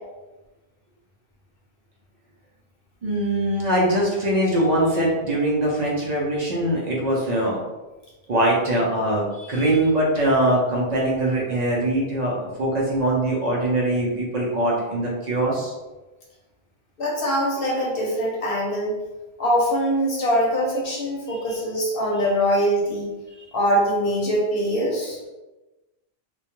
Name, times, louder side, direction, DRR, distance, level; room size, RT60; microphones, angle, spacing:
voice 1, 3.0-7.6 8.3-15.7 21.3-21.6 23.4-23.5, right 1 dB, 50° right, -4 dB, 0.6 m, -22 dB
voice 2, 17.0-19.0 19.4-23.1 23.5-25.2, equal, 65° left, -4 dB, 0.9 m, -23 dB
2.3 x 2.2 x 2.8 m, 1.1 s
omnidirectional pair, 1.1 m